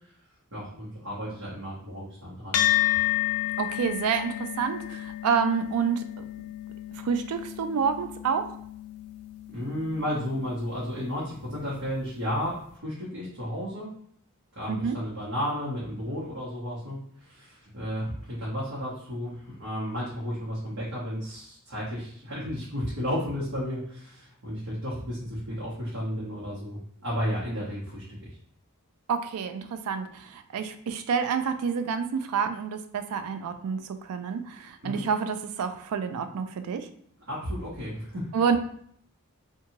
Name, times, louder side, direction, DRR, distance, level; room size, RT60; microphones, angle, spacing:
voice 1, 0.5-2.6 9.5-13.9 14.6-28.0 34.8-35.0 37.3-38.3, equal, 60° right, -8 dB, 0.9 m, -33 dB
sound 1, 2.5-11.2, left 14 dB, 70° left, 0.3 m, -31 dB
voice 2, 3.6-6.2 6.9-8.5 14.7-15.0 29.1-36.9 38.3-38.6, right 6 dB, 80° right, 8 dB, 0.3 m, -28 dB
2.7 x 2.3 x 2.8 m, 0.64 s
head